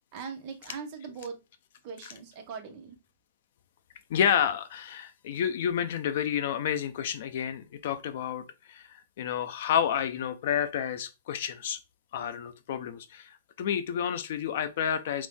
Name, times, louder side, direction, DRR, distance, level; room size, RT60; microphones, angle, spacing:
voice 1, 0.1-1.4 1.8-3.0, right 5 dB, 30° right, 0.6 m, -40 dB
voice 2, 4.1-11.8 12.1-15.3, left 9 dB, 50° left, 0.4 m, -30 dB
3.0 x 2.6 x 3.5 m
supercardioid pair, 175°, 0 cm